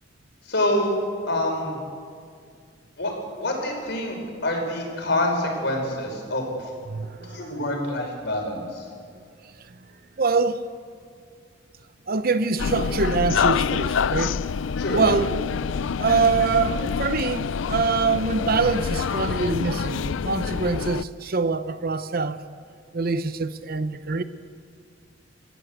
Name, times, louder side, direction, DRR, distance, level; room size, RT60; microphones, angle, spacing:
voice 1, 0.5-1.0 1.3-1.8 3.0-3.1 3.4-6.7 7.2-8.8 14.8-15.0, left 1 dB, 65° left, 5.2 m, -26 dB
voice 2, 6.9-7.6 10.2-10.6 12.1-14.4 14.9-15.3 16.0-22.4 22.9-24.2, right 4 dB, 50° right, 0.8 m, -24 dB
sound 1, 12.6-21.0, left 6 dB, 90° left, 0.4 m, -26 dB
28.5 x 14.5 x 8.0 m
head